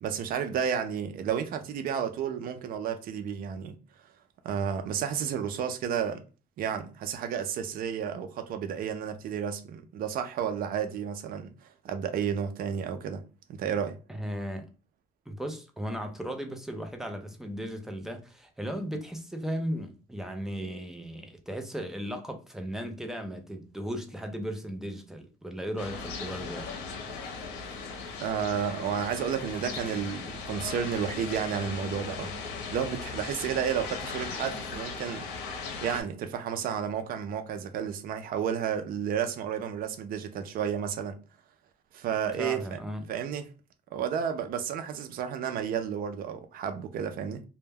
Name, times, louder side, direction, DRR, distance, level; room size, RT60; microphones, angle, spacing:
voice 1, 0.0-3.8 4.4-6.2 6.6-13.2 13.5-14.0 28.2-32.3 32.7-35.3 35.8-41.2 41.9-42.8 43.1-43.4 43.9-47.4, right 8 dB, 60° right, 0.4 m, -32 dB
voice 2, 14.1-14.7 15.3-26.7 42.4-43.1, equal, 5° right, 0.5 m, -36 dB
sound 1, 25.8-36.0, left 5 dB, 85° left, 0.6 m, -38 dB
2.2 x 2.1 x 3.3 m
cardioid pair, 110°, 17 cm